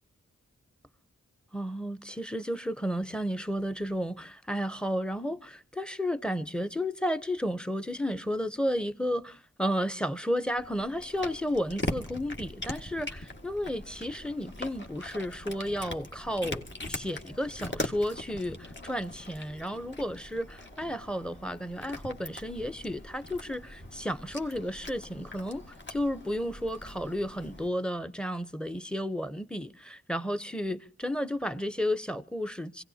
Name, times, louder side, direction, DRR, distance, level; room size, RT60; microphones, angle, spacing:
voice 1, 1.5-32.8, equal, 5° left, 0.8 m, -32 dB
Cat, 10.6-27.7, left 1 dB, 40° left, 1.7 m, -41 dB
25.5 x 17.0 x 2.8 m
cardioid pair, 45°, 30 cm